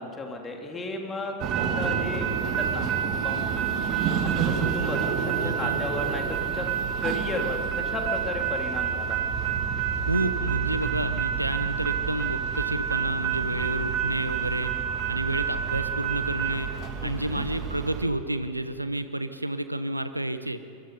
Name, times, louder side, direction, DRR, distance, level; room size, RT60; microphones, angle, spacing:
voice 1, 0.0-2.8 3.2-3.4 4.2-6.7 7.0-9.2 17.0-17.4, left 2 dB, 20° left, 2 dB, 3.1 m, -34 dB
sound 1, 1.4-18.0, right 7 dB, 35° right, 2.4 m, -28 dB
voice 2, 5.4-5.8 10.1-14.7 15.1-16.7 17.0-20.6, right 1 dB, 85° right, 11 dB, 1.1 m, -30 dB
27.5 x 22.5 x 5.5 m, 2.9 s
figure-of-eight pair, 90°, 0 cm